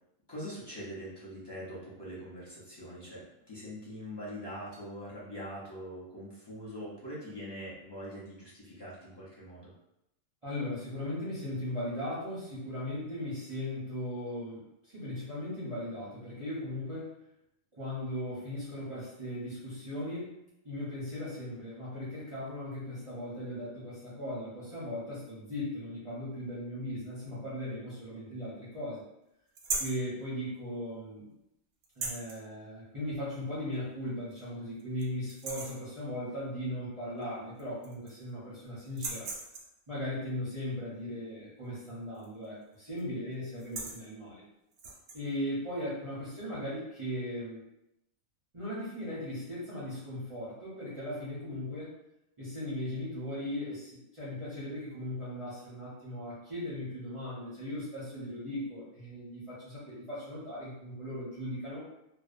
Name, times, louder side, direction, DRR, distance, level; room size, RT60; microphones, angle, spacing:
voice 1, 0.3-9.7, equal, 35° left, -8 dB, 0.4 m, -43 dB
voice 2, 10.4-17.2 17.8-20.4 20.6-29.0 29.8-31.3 32.0-39.3 39.9-44.4 45.1-47.6 48.5-51.9 52.4-61.8, left 1 dB, 35° right, -10 dB, 0.5 m, -38 dB
sound 1, 29.6-30.0 31.8-32.4 33.7-33.8 34.3-34.4 34.8-35.0 35.3-35.8 37.2-37.3 37.6-38.3 38.9-39.8 42.1-42.5 42.7-43.0 43.5-44.0 44.7-45.2, right 3 dB, 85° right, 1.0 m, -38 dB
2.6 x 2.1 x 2.5 m, 0.84 s
omnidirectional pair, 1.5 m